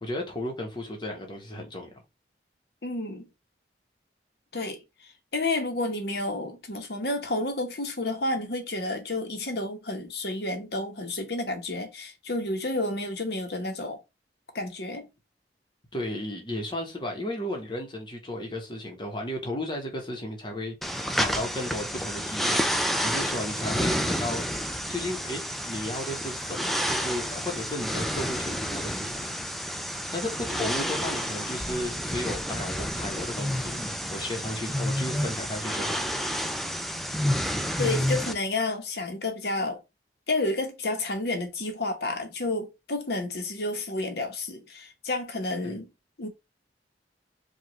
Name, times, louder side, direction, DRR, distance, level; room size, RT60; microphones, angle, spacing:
voice 1, 0.0-1.9 15.9-22.6 23.0-24.4 24.9-29.3 30.1-33.8 34.1-36.1 45.6-45.8, left 1 dB, 25° left, 1.0 m, -34 dB
voice 2, 2.8-3.3 4.5-4.8 5.3-14.0 14.5-15.1 37.8-39.8 40.3-45.9 46.2-46.3, left 2 dB, 60° left, 1.0 m, -30 dB
sound 1, 20.8-38.3, equal, ahead, 0.3 m, -30 dB
4.8 x 2.4 x 3.0 m
head